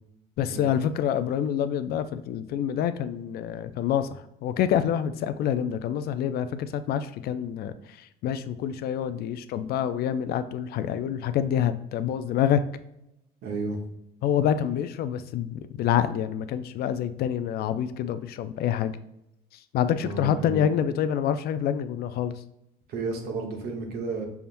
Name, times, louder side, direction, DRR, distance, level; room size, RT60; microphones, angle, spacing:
voice 1, 0.4-12.6 14.2-18.9 19.7-22.3, left 9 dB, 65° left, 12 dB, 0.4 m, -27 dB
voice 2, 13.4-13.8 20.0-20.7 22.9-24.3, right 3 dB, 70° right, 2 dB, 1.2 m, -32 dB
5.7 x 3.5 x 2.6 m, 0.83 s
cardioid pair, 110°, 17 cm